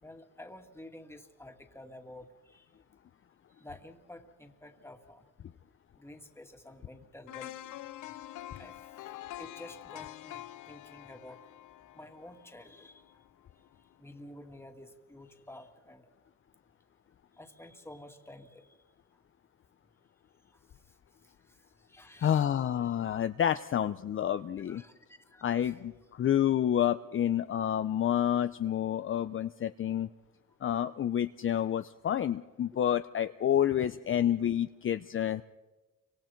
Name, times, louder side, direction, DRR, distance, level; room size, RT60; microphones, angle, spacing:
voice 1, 0.0-2.7 3.6-5.3 6.0-7.7 8.6-11.4 11.9-13.2 14.0-16.1 17.4-18.7 20.5-20.6 21.5-22.5 22.9-23.0 23.5-23.6 24.7-25.8, left 1 dB, 10° left, 5 dB, 2.3 m, -51 dB
sound 1, 7.3-13.3 13.7-13.8, left 14 dB, 80° left, 0.7 m, -46 dB
voice 2, 22.2-24.8 25.4-30.1 30.6-35.4, left 10 dB, 45° left, 10 dB, 0.6 m, -29 dB
30.0 x 25.0 x 4.6 m, 1.2 s
cardioid pair, 90°, 30 cm